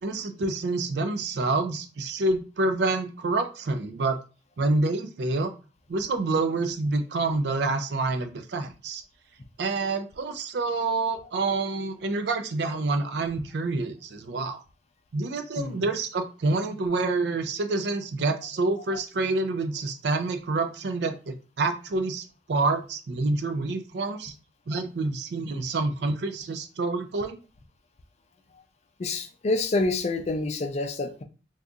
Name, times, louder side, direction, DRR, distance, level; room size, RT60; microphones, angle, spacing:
voice 1, 0.0-4.2 4.6-5.5 5.9-9.0 9.6-14.6 15.1-24.3 24.7-27.4, right 3 dB, 65° right, 8 dB, 0.4 m, -27 dB
voice 2, 29.0-31.2, left 2 dB, 35° left, 6 dB, 0.4 m, -27 dB
2.6 x 2.4 x 3.6 m, 0.34 s
head